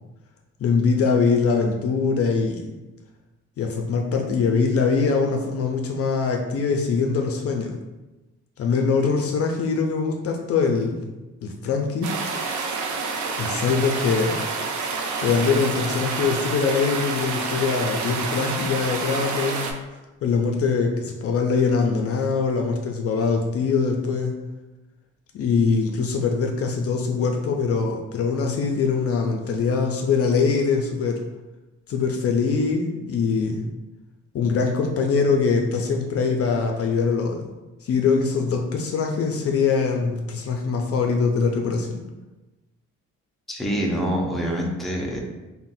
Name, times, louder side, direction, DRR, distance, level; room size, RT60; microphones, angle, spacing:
voice 1, 0.6-2.7 3.6-7.8 8.6-11.1 11.4-12.1 13.4-14.4 15.2-19.7 20.2-24.3 25.3-31.2 31.9-33.7 34.3-37.5 37.8-42.0, left 5 dB, 50° left, 2 dB, 0.4 m, -23 dB
sound 1, 12.0-19.7, right 4 dB, 75° right, 0.5 m, -28 dB
voice 2, 43.5-45.2, equal, ahead, -2 dB, 0.5 m, -25 dB
3.7 x 2.1 x 2.6 m, 1.1 s
cardioid pair, 90°, 30 cm